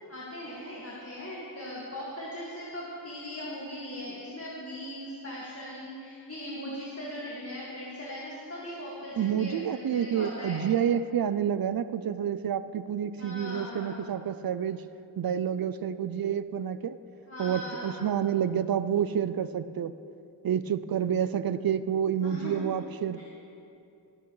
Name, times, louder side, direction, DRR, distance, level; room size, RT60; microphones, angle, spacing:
voice 1, 0.1-10.6 13.2-14.0 17.3-18.0 22.2-22.7 23.2-23.3, left 1 dB, 30° left, -6 dB, 2.0 m, -39 dB
voice 2, 9.2-14.8 15.2-17.0 17.4-19.9 20.4-23.2, right 8 dB, 55° right, 14 dB, 0.5 m, -29 dB
21.0 x 8.2 x 3.2 m, 2.6 s
wide cardioid pair, 75°, 44 cm